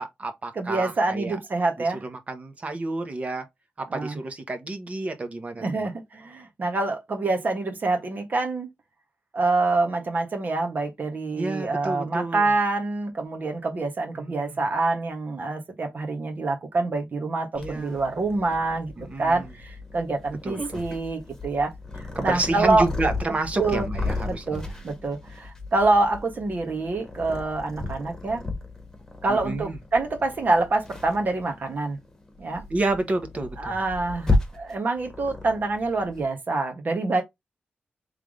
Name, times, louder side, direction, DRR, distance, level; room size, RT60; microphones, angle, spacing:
voice 1, 0.0-1.4 1.8-3.5 3.8-5.9 11.3-12.5 14.1-14.6 17.6-18.0 19.0-19.5 20.4-20.8 22.1-24.8 29.3-29.8 32.7-33.8, right 2 dB, 35° right, 1.1 m, -30 dB
voice 2, 0.5-2.0 3.9-4.2 5.6-8.7 9.3-21.7 22.2-22.9 23.6-23.9 24.3-28.4 29.2-32.0 32.4-32.6 33.6-37.2, right 3 dB, 50° right, 1.4 m, -26 dB
Purr, 17.5-36.2, left 2 dB, 15° left, 1.4 m, -34 dB
3.6 x 3.4 x 3.6 m
wide cardioid pair, 120°, 4 cm